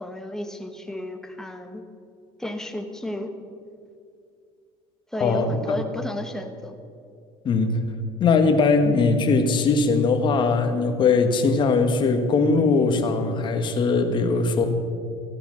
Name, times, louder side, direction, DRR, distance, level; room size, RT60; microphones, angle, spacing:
voice 1, 0.0-1.8 2.4-3.3 5.1-6.8, left 1 dB, 5° left, 5 dB, 1.4 m, -32 dB
voice 2, 5.2-5.6 7.5-7.8 8.2-14.7, left 4 dB, 40° left, 6 dB, 1.8 m, -20 dB
15.5 x 11.5 x 6.5 m, 2.4 s
cardioid pair, 120°, 13 cm